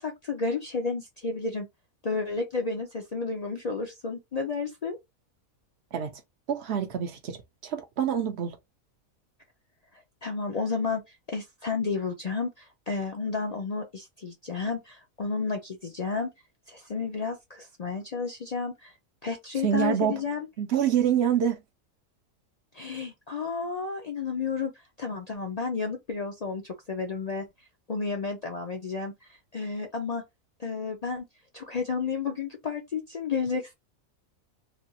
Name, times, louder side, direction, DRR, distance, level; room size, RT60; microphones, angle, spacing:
voice 1, 0.0-1.7 2.0-5.0 10.2-11.0 11.3-16.3 16.7-18.9 19.2-20.5 22.7-24.7 25.0-27.5 27.9-29.1 29.5-30.2 30.6-31.2 31.5-33.7, left 4 dB, 70° left, 0.3 m, -31 dB
voice 2, 6.5-8.6 19.6-20.2 20.6-21.6, right 9 dB, 65° right, 0.7 m, -26 dB
3.3 x 2.3 x 2.7 m
omnidirectional pair, 1.4 m